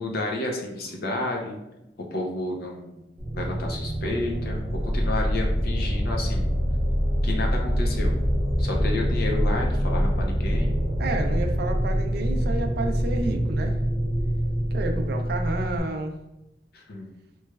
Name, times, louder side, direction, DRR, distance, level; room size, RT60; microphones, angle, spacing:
voice 1, 0.0-1.6 2.0-3.0 3.3-6.5 7.2-8.2 8.6-10.7 16.7-17.1, left 2 dB, 60° left, 1 dB, 0.6 m, -31 dB
sound 1, 3.2-15.8, equal, 20° right, 0.7 m, -25 dB
voice 2, 11.0-13.8 14.7-16.2, right 2 dB, 60° right, 4 dB, 0.4 m, -30 dB
3.1 x 3.1 x 2.3 m, 0.91 s
head